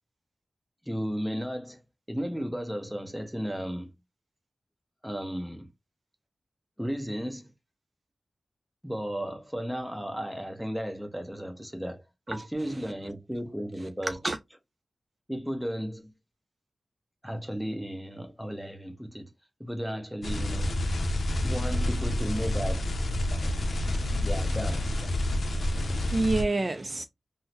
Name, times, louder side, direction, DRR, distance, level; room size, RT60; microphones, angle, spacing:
voice 1, 0.8-1.8 2.1-3.9 5.0-5.7 6.8-7.5 8.8-14.2 15.3-16.1 17.2-19.3 19.6-20.8 21.4-22.8 24.2-24.9, equal, 5° right, 0.8 m, -34 dB
sound 1, 20.2-26.4, left 1 dB, 75° left, 0.5 m, -28 dB
voice 2, 23.3-24.3 25.6-27.0, right 2 dB, 40° right, 0.3 m, -31 dB
3.7 x 2.0 x 2.8 m
wide cardioid pair, 75°, 0 cm